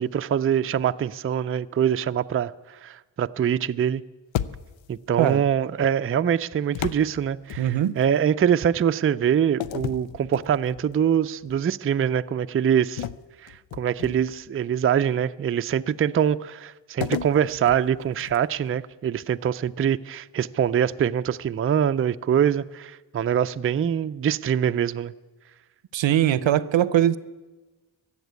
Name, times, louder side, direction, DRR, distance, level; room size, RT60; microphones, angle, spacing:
voice 1, 0.0-4.0 4.9-13.0 13.4-25.1, right 8 dB, 30° right, 0.4 m, -24 dB
sound 1, 4.3-5.0 6.7-8.1 9.6-10.9 11.4-11.6 13.0-14.5 17.0-18.6, left 11 dB, 85° left, 0.5 m, -34 dB
voice 2, 7.6-8.0 25.9-27.2, right 11 dB, 80° right, 0.6 m, -21 dB
15.0 x 7.3 x 9.5 m
cardioid pair, 55°, 45 cm